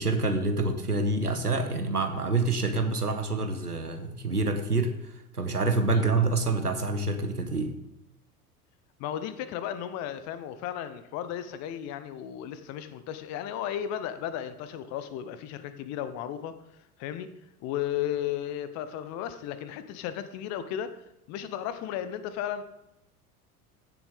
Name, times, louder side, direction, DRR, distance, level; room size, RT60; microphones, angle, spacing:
voice 1, 0.0-7.7, right 3 dB, 90° right, 7 dB, 1.2 m, -27 dB
voice 2, 9.0-16.5 17.0-17.3 17.6-21.0 21.3-22.6, left 10 dB, 35° left, 12 dB, 0.8 m, -34 dB
15.5 x 7.2 x 3.5 m, 0.87 s
figure-of-eight pair, 80°, 44 cm